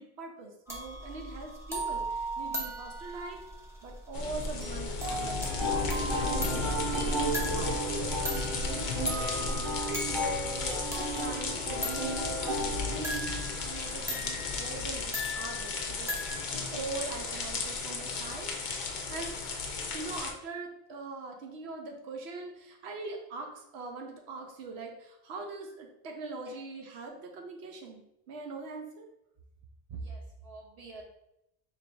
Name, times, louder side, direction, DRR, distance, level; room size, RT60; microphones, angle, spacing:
voice 1, 0.0-3.4 3.8-16.1 16.7-19.3 19.9-29.1, right 3 dB, 75° right, 2 dB, 1.0 m, -42 dB
sound 1, 0.7-16.3, equal, 5° right, 0.7 m, -39 dB
sound 2, 4.1-20.3, left 4 dB, 55° left, 0.6 m, -34 dB
sound 3, 5.6-13.5, right 1 dB, 25° right, 0.9 m, -34 dB
voice 2, 29.9-31.0, right 3 dB, 45° right, 1 dB, 0.5 m, -43 dB
3.0 x 2.6 x 4.4 m, 0.82 s
omnidirectional pair, 1.1 m